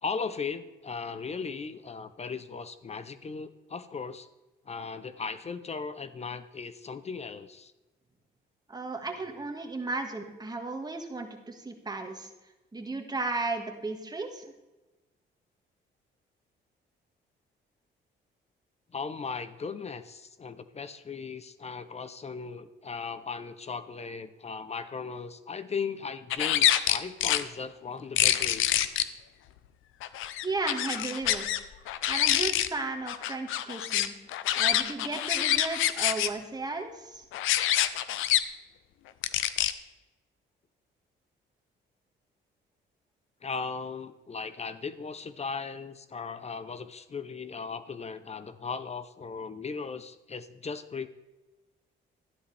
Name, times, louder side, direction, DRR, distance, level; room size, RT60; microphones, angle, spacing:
voice 1, 0.0-4.3 4.7-7.7 18.9-28.8 43.4-51.1, left 5 dB, 35° left, 13 dB, 0.7 m, -37 dB
voice 2, 8.7-12.3 12.7-14.4 30.4-31.6 32.1-34.1 34.6-37.2, right 3 dB, 20° right, 4 dB, 1.7 m, -35 dB
sound 1, 26.3-27.4 28.2-29.0 30.0-31.6 31.9-32.7 33.1-36.3 37.3-38.4 39.2-39.7, left 12 dB, 90° left, 0.6 m, -26 dB
13.0 x 11.0 x 3.4 m, 1.1 s
cardioid pair, 90°, 20 cm